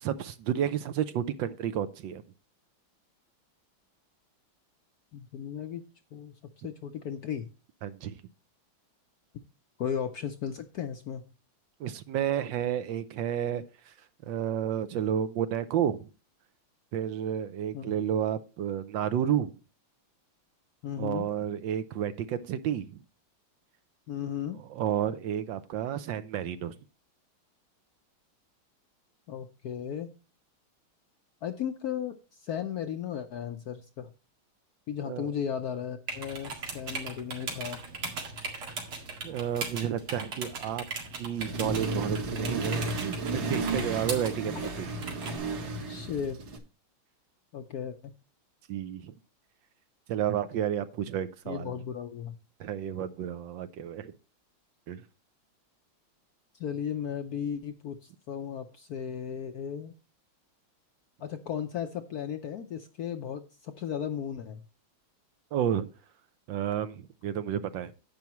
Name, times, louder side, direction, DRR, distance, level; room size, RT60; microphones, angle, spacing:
voice 1, 0.0-2.2 7.8-8.2 11.8-13.9 14.2-16.1 16.9-19.5 21.0-22.9 24.7-26.7 35.1-35.3 39.2-40.8 41.1-44.9 48.7-49.1 50.1-51.7 52.6-54.1 54.9-55.0 65.5-65.9 66.5-67.9, right 9 dB, 75° right, 1.3 m, -31 dB
voice 2, 5.1-5.8 6.1-6.3 6.6-7.5 9.8-11.2 17.7-17.9 20.8-21.3 24.1-24.6 29.3-30.1 31.4-34.1 34.9-37.8 44.5-44.7 45.9-46.4 47.5-48.1 51.5-52.4 56.6-59.9 61.2-64.6, left 8 dB, 70° left, 0.9 m, -35 dB
sound 1, 36.1-45.4, right 4 dB, 90° right, 2.9 m, -39 dB
Accelerating revving vroom, 41.4-46.6, right 2 dB, 55° right, 1.9 m, -33 dB
10.5 x 8.2 x 3.0 m
omnidirectional pair, 2.3 m